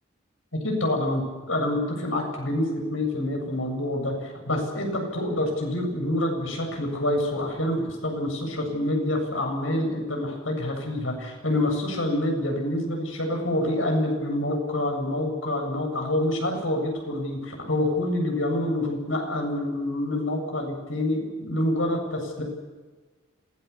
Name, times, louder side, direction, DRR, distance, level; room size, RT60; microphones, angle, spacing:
voice 1, 0.6-1.2 1.5-22.4, left 1 dB, 80° left, 2 dB, 7.8 m, -27 dB
27.0 x 19.0 x 7.1 m, 1.3 s
head